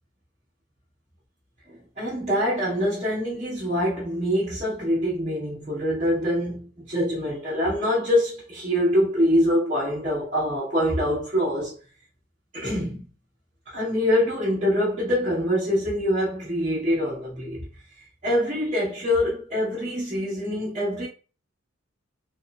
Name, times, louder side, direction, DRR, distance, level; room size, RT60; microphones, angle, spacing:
voice 1, 1.7-11.7 12.5-13.1 13.7-17.7 18.2-21.1, equal, 35° right, 1.0 m, -24 dB
3.0 x 2.0 x 2.3 m
head